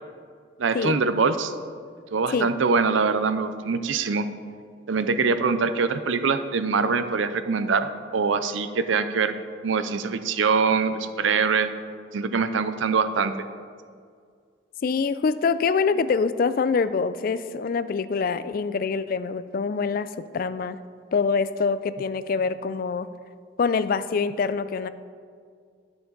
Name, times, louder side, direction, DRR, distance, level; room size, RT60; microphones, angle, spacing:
voice 1, 0.6-1.5 2.1-4.3 4.9-9.4 9.6-11.7 12.1-13.3, right 5 dB, 75° right, 11 dB, 0.5 m, -23 dB
voice 2, 14.8-20.8 21.1-23.1 23.6-24.9, left 5 dB, 45° left, 14 dB, 0.3 m, -25 dB
11.0 x 6.7 x 4.0 m, 2.1 s
head